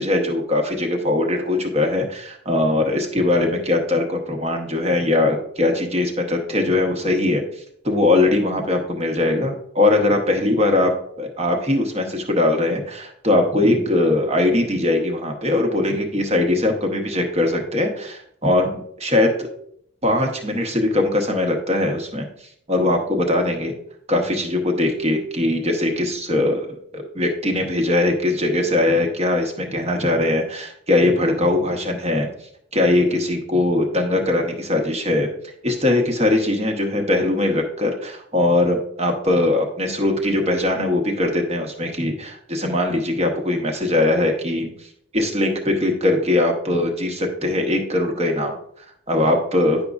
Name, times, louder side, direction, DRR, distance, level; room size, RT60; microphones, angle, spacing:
voice 1, 0.0-7.4 7.8-10.9 11.2-19.5 20.0-22.3 22.7-23.7 24.1-32.3 32.7-35.3 35.6-44.7 45.1-48.5 49.1-49.8, left 2 dB, 30° right, 3 dB, 1.0 m, -21 dB
10.0 x 5.2 x 2.4 m, 0.67 s
head